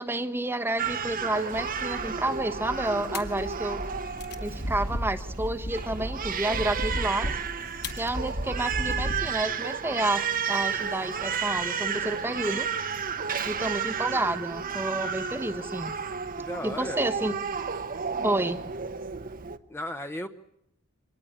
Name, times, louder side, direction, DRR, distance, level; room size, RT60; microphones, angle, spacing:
voice 1, 0.0-3.8 4.4-7.4 8.0-12.7 13.4-15.9 16.6-17.4 18.2-18.6, right 1 dB, 10° right, 7 dB, 1.1 m, -30 dB
Crying sobbing, 0.8-19.6, right 6 dB, 40° right, 1.0 m, -32 dB
sound 1, 1.5-9.4, equal, 50° left, 2.0 m, -35 dB
voice 2, 16.4-17.0 19.7-20.3, left 1 dB, 10° left, 7 dB, 1.0 m, -35 dB
25.5 x 19.5 x 8.7 m, 0.74 s
head